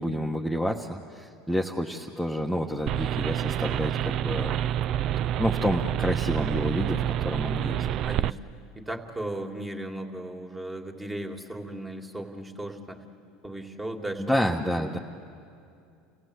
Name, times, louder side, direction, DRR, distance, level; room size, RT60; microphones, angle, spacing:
voice 1, 0.0-4.6 5.4-7.8 14.2-15.0, equal, ahead, -1 dB, 1.3 m, -29 dB
sound 1, 2.9-8.3, right 11 dB, 55° right, 0.5 m, -28 dB
voice 2, 8.9-13.0 13.4-14.3 14.7-14.9, right 1 dB, 15° right, 4 dB, 2.4 m, -36 dB
29.0 x 17.0 x 8.1 m, 2.5 s
hypercardioid pair, 90°, 0 cm